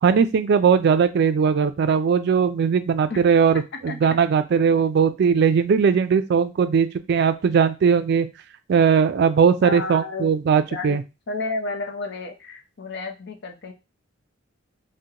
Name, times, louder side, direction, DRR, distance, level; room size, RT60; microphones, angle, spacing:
voice 1, 0.0-8.3 8.7-11.0, right 6 dB, 60° right, 10 dB, 0.3 m, -19 dB
voice 2, 9.6-10.3 10.7-11.0 11.3-13.7, left 3 dB, 65° left, 4 dB, 0.6 m, -31 dB
2.8 x 2.1 x 3.7 m, 0.26 s
head